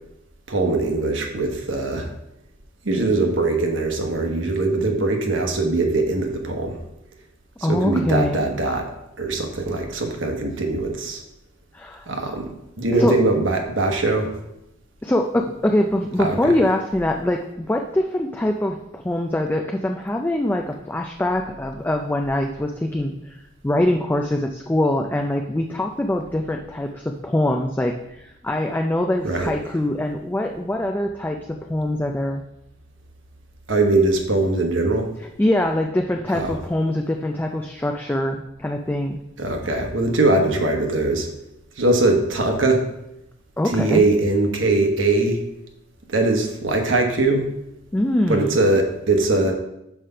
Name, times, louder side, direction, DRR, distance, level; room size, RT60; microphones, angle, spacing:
voice 1, 0.5-2.1 2.8-6.8 7.6-8.9 9.2-11.2 12.1-12.5 12.8-14.3 16.2-16.5 29.2-29.5 33.7-35.1 36.3-36.5 39.4-41.3 41.8-42.9 43.6-45.4 46.1-47.5 48.3-49.5, right 2 dB, 80° right, 3 dB, 1.1 m, -21 dB
voice 2, 7.6-8.4 11.7-12.1 13.0-13.1 15.0-32.4 35.4-39.2 43.6-44.0 47.9-48.6, left 1 dB, 10° left, 3 dB, 0.3 m, -23 dB
5.9 x 4.9 x 5.5 m, 0.85 s
head